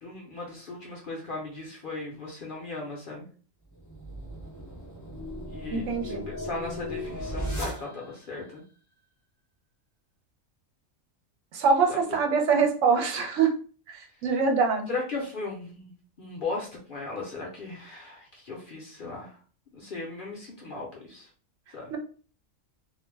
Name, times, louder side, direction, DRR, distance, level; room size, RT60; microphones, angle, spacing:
voice 1, 0.0-3.3 5.5-8.6 11.9-12.2 14.9-19.4 19.7-21.3 21.7-22.0, left 3 dB, 50° left, -2 dB, 0.7 m, -37 dB
sound 1, 3.7-8.3, equal, 30° left, 0.3 m, -36 dB
voice 2, 5.7-6.3 11.5-13.5 14.2-14.9 21.9-22.0, right 5 dB, 75° right, 3 dB, 0.9 m, -23 dB
2.4 x 2.1 x 3.2 m, 0.41 s
omnidirectional pair, 1.3 m